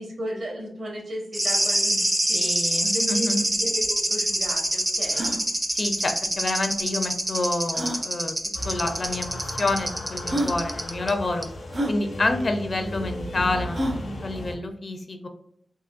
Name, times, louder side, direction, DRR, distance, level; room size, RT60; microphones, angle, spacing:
voice 1, 0.0-2.5 2.9-5.3, equal, 75° right, -1 dB, 1.3 m, -35 dB
sound 1, 1.3-11.1 11.4-11.5, right 1 dB, 20° right, 0.4 m, -26 dB
voice 2, 2.3-3.5 5.7-8.4 8.6-11.5 11.9-15.3, left 2 dB, 45° left, 6 dB, 0.4 m, -28 dB
sound 2, 3.5-3.6 3.8-3.9 4.4-4.5 5.0-5.4 6.7-6.8 7.7-8.0 9.0-9.1 9.9-10.0 10.3-10.6 11.7-12.0 13.7-14.1, right 1 dB, 45° right, 0.7 m, -28 dB
sound 3, 8.5-14.5, left 1 dB, 90° left, 0.8 m, -35 dB
3.7 x 2.5 x 2.4 m, 0.73 s
wide cardioid pair, 115°, 0 cm